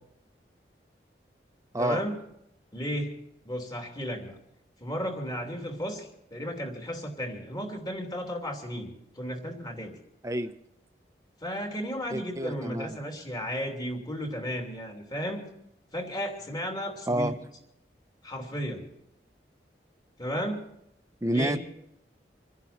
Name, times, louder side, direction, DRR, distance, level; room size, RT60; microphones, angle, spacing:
voice 1, 1.8-2.2 2.7-3.1 3.4-4.3 4.8-10.0 11.4-15.5 15.9-17.3 18.2-18.8 20.2-20.6 21.3-21.6, equal, 25° left, 2 dB, 3.0 m, -34 dB
voice 2, 10.2-10.5 12.1-13.0 17.1-17.3 21.2-21.6, right 1 dB, 20° right, 9 dB, 0.8 m, -29 dB
27.0 x 11.0 x 4.4 m, 0.79 s
head